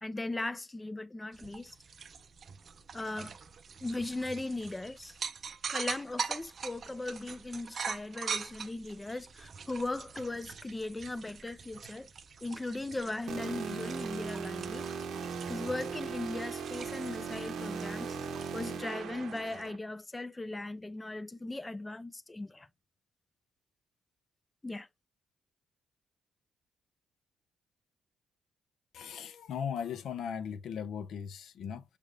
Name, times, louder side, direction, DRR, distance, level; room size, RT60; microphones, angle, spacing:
voice 1, 0.0-1.8 2.9-3.4 3.8-5.2 5.7-12.1 12.4-14.9 15.5-18.1 18.5-22.7 24.6-24.9, left 2 dB, 15° left, 0.3 m, -38 dB
sound 1, 1.3-19.7, right 6 dB, 45° right, 0.5 m, -43 dB
sound 2, 13.3-19.8, right 5 dB, 70° right, 0.8 m, -38 dB
voice 2, 28.9-31.8, left 7 dB, 70° left, 0.5 m, -38 dB
6.6 x 3.3 x 2.4 m
cardioid pair, 90°, 0 cm